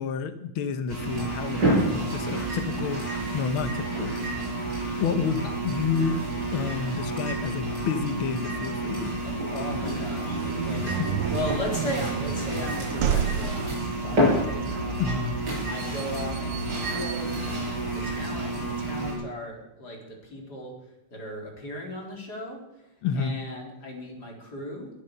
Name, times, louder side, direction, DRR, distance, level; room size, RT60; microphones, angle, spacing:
voice 1, 0.0-4.1 5.0-6.2 6.5-9.1 10.8-11.2 15.0-15.4 23.0-23.4, left 6 dB, 80° left, 10 dB, 1.2 m, -30 dB
sound 1, 0.9-19.1, right 1 dB, 30° right, 8.2 m, -29 dB
voice 2, 9.2-15.3 15.6-20.7 21.1-24.9, left 1 dB, 30° left, 0 dB, 4.3 m, -37 dB
sound 2, 10.1-18.8, right 9 dB, 80° right, 1.2 m, -33 dB
20.5 x 10.5 x 6.6 m, 0.92 s
omnidirectional pair, 3.6 m